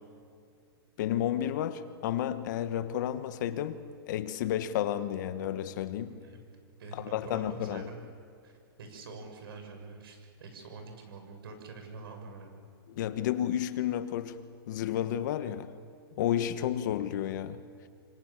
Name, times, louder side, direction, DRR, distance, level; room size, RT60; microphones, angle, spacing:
voice 1, 1.0-6.2 7.1-7.9 12.9-14.4 14.7-15.7 16.2-17.6, left 11 dB, 50° left, 1.4 m, -31 dB
voice 2, 6.1-8.0 8.4-12.6, right 4 dB, 65° right, 6.9 m, -46 dB
27.5 x 26.0 x 7.4 m
hypercardioid pair, 155°, 13 cm